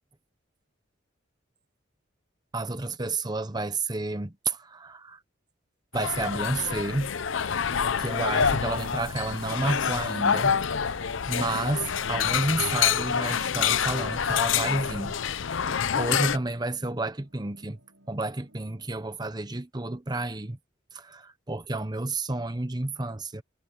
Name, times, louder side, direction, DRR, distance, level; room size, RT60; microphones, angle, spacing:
voice 1, 2.5-5.2 5.9-7.1 8.0-10.6 10.9-15.2 15.5-17.8 18.1-20.6 20.9-23.4, right 2 dB, 20° right, 0.9 m, -31 dB
sound 1, 5.9-16.4, left 7 dB, 85° left, 0.7 m, -27 dB
sound 2, 9.8-18.9, equal, 80° right, 7.5 m, -60 dB
head